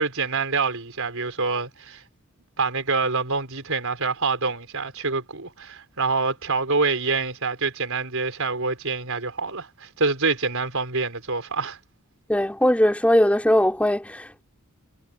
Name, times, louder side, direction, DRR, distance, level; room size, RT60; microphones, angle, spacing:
voice 1, 0.0-2.0 2.6-11.8, right 4 dB, 70° right, 5.5 m, -26 dB
voice 2, 12.3-14.4, equal, 5° left, 4.7 m, -20 dB
head